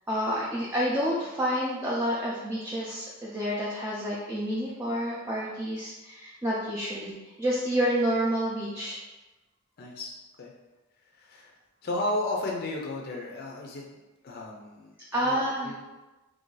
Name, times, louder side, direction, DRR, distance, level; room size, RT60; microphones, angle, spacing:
voice 1, 0.1-7.1 7.4-9.0 15.1-15.7, equal, 10° right, -6 dB, 0.5 m, -29 dB
voice 2, 9.8-10.1 10.4-10.5 11.1-11.6 11.8-15.8, left 1 dB, 50° left, -1 dB, 0.5 m, -34 dB
3.2 x 2.6 x 3.8 m, 1.1 s
head